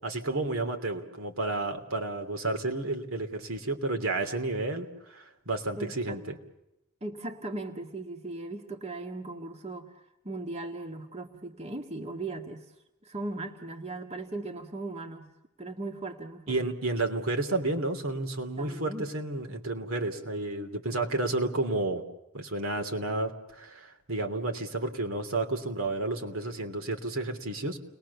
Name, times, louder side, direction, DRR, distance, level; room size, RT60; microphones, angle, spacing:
voice 1, 0.0-6.4 16.5-22.0 22.3-27.8, right 2 dB, 70° right, 5 dB, 3.2 m, -31 dB
voice 2, 5.8-6.2 7.0-9.9 10.3-12.7 13.0-15.3 15.6-16.6 18.6-19.1, right 2 dB, 30° right, 4 dB, 1.9 m, -38 dB
30.0 x 21.5 x 7.0 m, 0.89 s
head